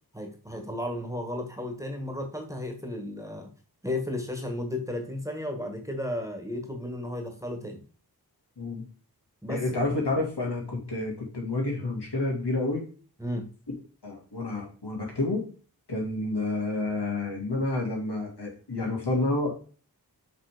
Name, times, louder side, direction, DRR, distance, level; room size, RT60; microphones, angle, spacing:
voice 1, 0.1-3.5 3.8-7.8 9.4-9.8 13.2-13.5, left 1 dB, 10° right, 4 dB, 1.5 m, -34 dB
voice 2, 9.5-12.9 14.0-15.5 15.9-19.6, left 2 dB, 85° left, -1 dB, 2.4 m, -29 dB
6.6 x 3.7 x 5.0 m, 0.38 s
wide cardioid pair, 50°, 39 cm